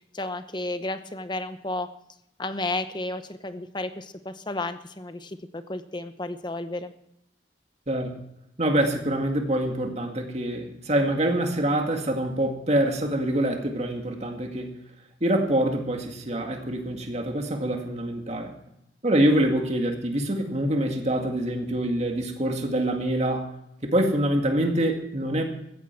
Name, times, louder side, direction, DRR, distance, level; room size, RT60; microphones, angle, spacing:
voice 1, 0.1-1.9 2.4-6.9, left 2 dB, 25° left, 10 dB, 0.9 m, -32 dB
voice 2, 8.6-14.8 15.2-18.5 19.0-23.5 23.8-25.4, right 1 dB, 35° right, 3 dB, 2.1 m, -25 dB
16.0 x 15.0 x 4.6 m, 0.81 s
head